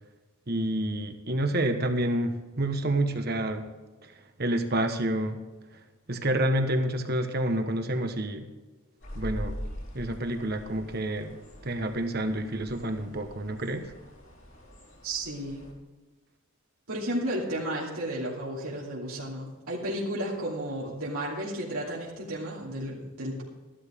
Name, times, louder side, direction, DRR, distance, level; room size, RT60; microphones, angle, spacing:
voice 1, 0.5-3.6 4.0-4.1 4.4-5.4 6.1-8.5 9.1-9.6 9.9-11.4 11.6-13.9, right 1 dB, 45° right, 7 dB, 1.3 m, -28 dB
sound 1, 9.0-15.7, equal, 55° left, 3.9 m, -42 dB
voice 2, 15.0-15.7 16.9-23.4, right 1 dB, 80° right, -5 dB, 2.8 m, -33 dB
14.5 x 12.5 x 3.7 m, 1.3 s
head